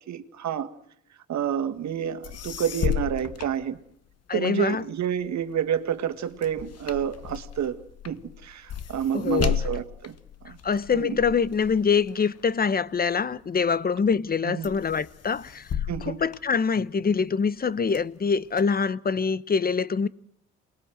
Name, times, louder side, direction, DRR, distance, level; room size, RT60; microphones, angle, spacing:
voice 1, 0.1-0.7 1.3-3.8 4.3-7.8 8.1-10.1 10.4-10.6 10.9-11.2 14.4-14.7 15.9-16.2, right 9 dB, 65° right, 2.0 m, -29 dB
sound 1, 2.0-2.1 2.2-4.3 4.8-13.5 14.0-14.3 14.6-17.1 17.6-18.6, left 9 dB, 55° left, 1.2 m, -34 dB
voice 2, 4.3-4.8 9.1-9.6 10.6-15.7 16.0-20.1, left 5 dB, 30° left, 0.9 m, -24 dB
28.0 x 21.0 x 7.9 m
cardioid pair, 90°, 30 cm